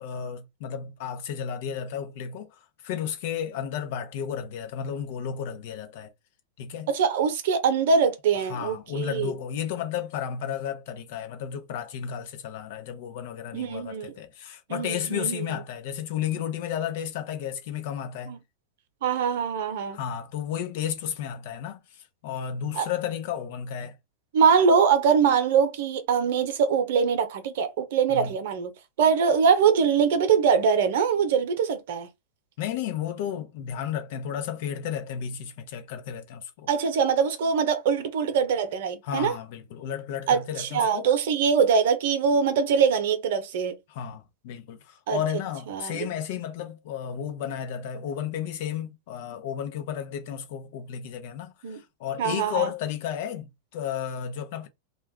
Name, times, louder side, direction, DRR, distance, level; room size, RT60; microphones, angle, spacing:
voice 1, 0.0-6.1 6.6-6.9 8.5-18.4 19.9-24.0 28.1-28.3 32.6-36.7 39.0-41.1 43.9-54.7, left 9 dB, 60° left, 0.7 m, -33 dB
voice 2, 6.9-9.3 13.5-14.1 14.7-15.5 18.3-18.4 19.0-20.0 22.7-22.9 24.3-28.7 29.0-32.1 36.7-39.3 40.3-43.8 45.1-45.2 45.7-46.1 51.6-51.8 52.2-52.7, right 6 dB, 65° right, 0.7 m, -23 dB
2.5 x 2.3 x 3.4 m
hypercardioid pair, 100°, 0 cm